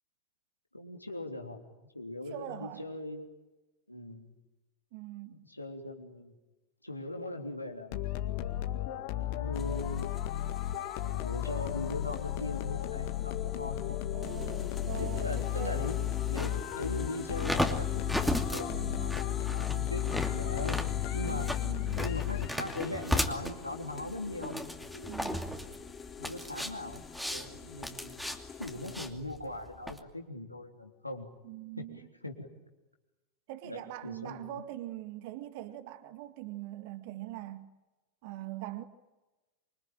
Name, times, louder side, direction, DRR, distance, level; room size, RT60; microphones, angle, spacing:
voice 1, 0.7-3.3 3.9-4.3 5.3-6.3 6.8-8.5 9.1-10.4 11.0-14.0 15.0-16.0 16.3-21.5 22.0-25.3 26.2-28.3 28.6-31.3 31.8-32.5 33.6-34.6, left 2 dB, 85° left, 3.4 m, -40 dB
voice 2, 2.3-2.8 4.9-5.5 14.1-15.9 18.7-19.2 21.3-22.0 25.1-25.4 31.4-32.0 33.5-37.7 38.2-38.8, right 14 dB, 50° right, 1.9 m, -42 dB
sound 1, 7.9-22.8, left 12 dB, 45° left, 1.9 m, -34 dB
sound 2, 9.5-29.1, left 6 dB, 20° left, 2.2 m, -46 dB
sound 3, 16.4-30.0, equal, ahead, 2.6 m, -36 dB
26.5 x 25.0 x 9.0 m
figure-of-eight pair, 90°, 0 cm